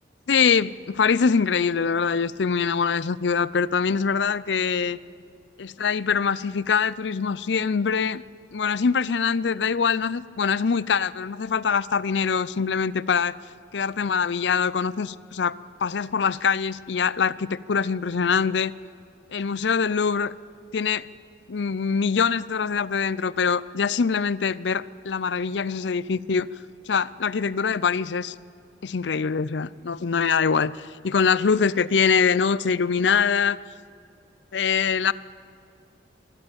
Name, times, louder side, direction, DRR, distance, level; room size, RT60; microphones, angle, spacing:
voice 1, 0.3-5.0 5.6-8.2 8.5-13.4 13.7-18.7 19.3-20.3 20.7-21.1 21.5-26.5 26.9-28.3 28.8-33.6 34.5-35.1, left 6 dB, 80° left, 19 dB, 0.5 m, -23 dB
26.0 x 11.5 x 8.7 m, 2.5 s
head